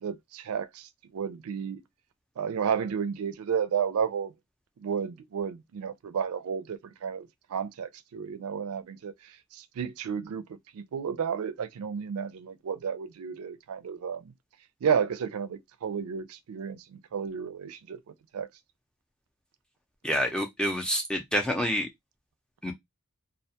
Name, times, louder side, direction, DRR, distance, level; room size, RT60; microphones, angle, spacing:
voice 1, 0.0-1.8 2.4-4.3 4.8-9.1 9.5-10.4 10.7-14.3 14.8-18.0 18.3-18.5, right 7 dB, 70° right, 0.4 m, -32 dB
voice 2, 20.0-21.9 22.6-22.7, equal, 5° left, 0.4 m, -27 dB
2.3 x 2.2 x 2.7 m
head